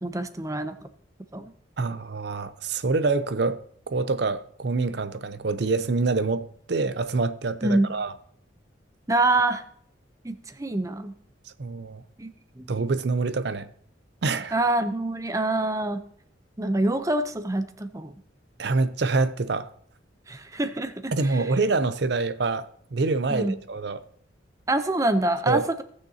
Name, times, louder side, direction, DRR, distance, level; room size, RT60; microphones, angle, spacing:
voice 1, 0.0-0.7 1.3-1.5 7.6-7.9 9.1-9.6 10.2-11.1 12.2-12.3 12.6-12.7 14.5-16.0 16.6-18.1 20.3-21.4 23.3-23.6 24.7-25.8, right 2 dB, 15° right, 0.6 m, -25 dB
voice 2, 1.8-3.6 3.9-8.1 11.6-12.0 12.7-13.7 14.2-14.5 18.6-19.7 21.1-24.0 25.5-25.7, right 3 dB, 55° right, 0.5 m, -26 dB
17.5 x 6.5 x 2.8 m
head